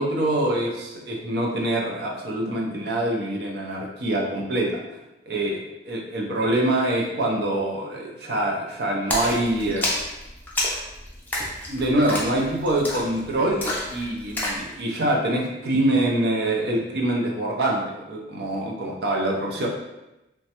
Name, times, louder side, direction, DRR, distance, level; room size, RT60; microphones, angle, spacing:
voice 1, 0.0-4.8 5.3-9.9 11.7-19.7, right 1 dB, 55° right, -1 dB, 0.5 m, -25 dB
Splash splatter, 9.1-14.6, left 1 dB, 10° left, 0.4 m, -29 dB
3.0 x 2.2 x 2.8 m, 0.96 s
head